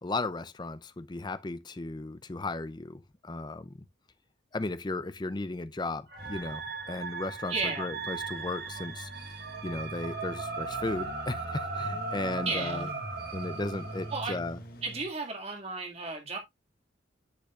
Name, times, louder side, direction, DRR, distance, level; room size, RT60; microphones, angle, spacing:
voice 1, 0.0-3.8 4.5-9.3 9.6-12.9 13.3-14.6, left 2 dB, 25° left, 0.5 m, -35 dB
sound 1, 6.1-15.0, equal, 50° left, 1.6 m, -44 dB
sound 2, 6.1-14.2, right 4 dB, 55° right, 1.3 m, -38 dB
voice 2, 7.5-7.9 12.5-12.8 14.1-14.4 14.8-16.4, right 3 dB, 35° right, 2.1 m, -33 dB
10.5 x 5.5 x 2.4 m
head